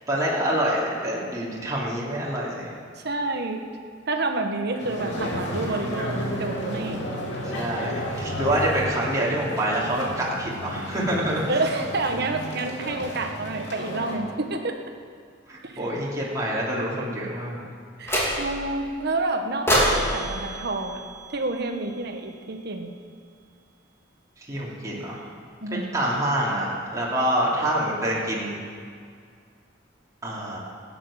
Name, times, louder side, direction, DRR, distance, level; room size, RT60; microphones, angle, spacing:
voice 1, 0.1-2.7 7.6-11.4 15.5-17.6 24.5-25.2 25.7-28.6 30.2-30.6, right 1 dB, 20° right, -6 dB, 2.9 m, -26 dB
voice 2, 3.0-3.6 4.1-7.1 11.5-14.8 15.6-15.9 18.0-21.0 21.3-22.9 25.6-25.9, right 2 dB, 60° right, 5 dB, 1.3 m, -29 dB
sound 1, 4.8-14.2, equal, 65° left, 3.0 m, -32 dB
sound 2, 18.1-18.7 19.7-21.9, equal, 15° left, 3.0 m, -26 dB
16.5 x 9.3 x 7.3 m, 2.2 s
head